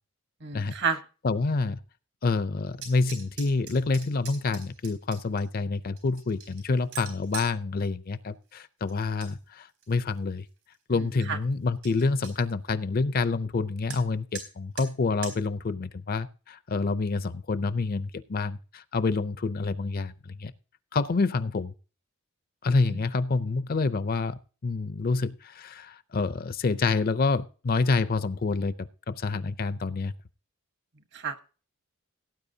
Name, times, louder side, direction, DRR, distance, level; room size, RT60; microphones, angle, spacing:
voice 1, 0.4-1.0 10.9-11.0 11.3-11.4 22.9-23.0 31.1-31.4, right 5 dB, 50° right, 9 dB, 1.0 m, -30 dB
voice 2, 1.2-1.8 2.2-10.5 10.9-20.5 20.9-21.7 22.6-30.1, left 3 dB, 40° left, 15 dB, 0.5 m, -28 dB
sound 1, 2.8-5.4 6.0-7.5 8.9-9.3 9.7-10.2 10.7-10.8 11.1-11.2 11.5-11.6 11.8-12.3 13.9-14.0 14.3-14.5 14.8-14.9 15.2-15.4, right 6 dB, 85° right, 4.2 m, -42 dB
17.5 x 9.1 x 2.7 m, 0.36 s
head